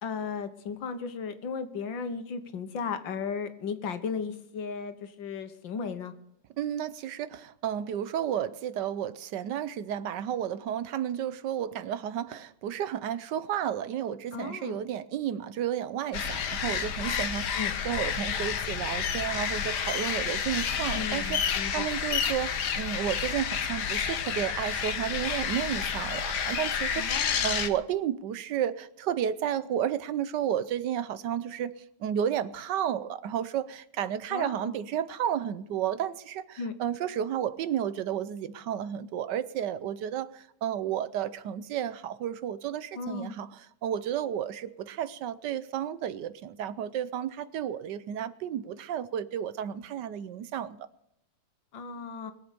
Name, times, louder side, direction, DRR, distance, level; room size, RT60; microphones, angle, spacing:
voice 1, 0.0-6.1 14.3-14.8 17.5-17.7 20.9-21.9 27.0-27.5 34.3-34.8 36.6-36.7 43.0-43.4 51.7-52.3, left 5 dB, 75° left, 1.9 m, -35 dB
voice 2, 6.6-31.7 32.0-50.8, right 9 dB, 70° right, 1.2 m, -32 dB
sound 1, 16.1-27.7, left 7 dB, 60° left, 1.6 m, -30 dB
21.5 x 7.8 x 6.8 m
omnidirectional pair, 2.1 m